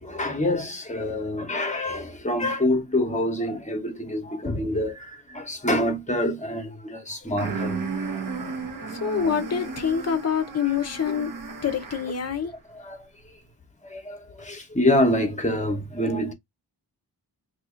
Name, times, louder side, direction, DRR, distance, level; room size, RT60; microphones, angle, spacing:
voice 1, 0.0-8.2 12.7-13.0 13.9-16.3, left 1 dB, 15° left, 1.0 m, -26 dB
sound 1, 7.4-12.3, right 4 dB, 50° right, 0.9 m, -34 dB
voice 2, 8.9-11.3 11.6-12.5, left 7 dB, 40° left, 0.7 m, -26 dB
2.8 x 2.7 x 3.7 m
wide cardioid pair, 155°, 41 cm